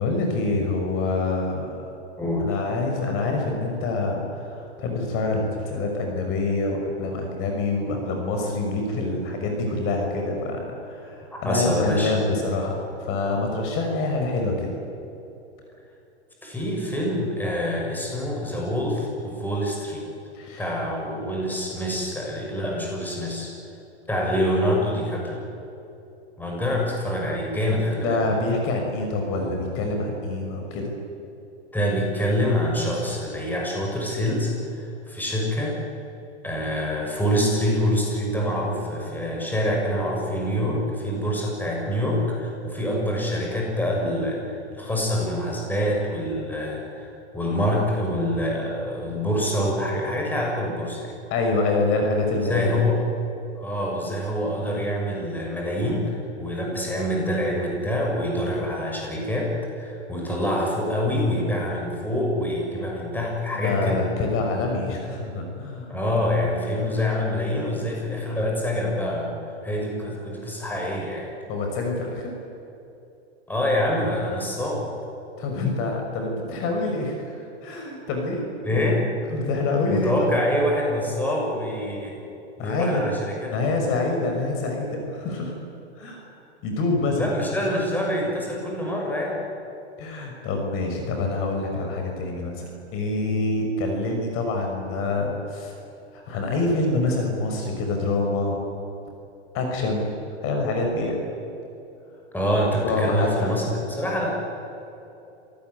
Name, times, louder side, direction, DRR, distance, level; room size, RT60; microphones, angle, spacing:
voice 1, 0.0-1.9 2.4-14.7 20.3-20.6 28.0-30.9 51.3-52.8 63.6-65.9 71.5-72.3 75.4-78.4 78.7-79.0 79.3-80.3 82.6-83.1 83.5-85.6 86.0-86.3 86.6-87.3 90.0-95.7 96.1-98.7 99.5-100.1 100.4-101.2 102.8-103.5, left 3 dB, 40° left, 2 dB, 5.9 m, -26 dB
voice 2, 2.2-2.6 11.3-12.2 16.4-20.1 20.6-23.5 24.1-25.4 26.4-28.2 31.7-35.8 36.4-51.1 52.3-53.0 53.6-64.0 65.9-71.3 73.5-74.8 78.6-79.1 79.9-82.2 82.6-83.6 87.1-89.4 102.3-104.5, equal, 5° left, -1 dB, 6.8 m, -26 dB
27.0 x 18.5 x 9.5 m, 2.8 s
hypercardioid pair, 135°, 33 cm